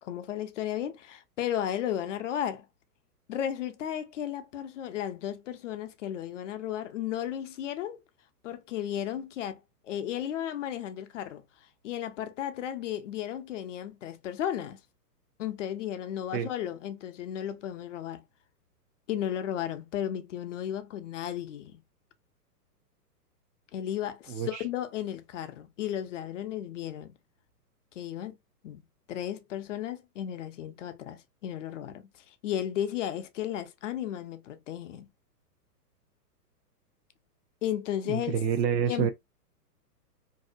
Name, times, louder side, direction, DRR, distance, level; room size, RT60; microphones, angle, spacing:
voice 1, 0.0-2.7 3.3-8.0 8.4-11.4 11.8-14.8 15.4-18.2 19.1-21.8 23.7-27.1 28.0-28.4 28.6-28.8 29.1-35.1 37.6-38.4 38.9-39.1, left 10 dB, 50° left, 0.5 m, -34 dB
voice 2, 24.3-24.6 38.1-39.1, right 8 dB, 85° right, 0.6 m, -28 dB
2.6 x 2.0 x 2.4 m
hypercardioid pair, 135°, 49 cm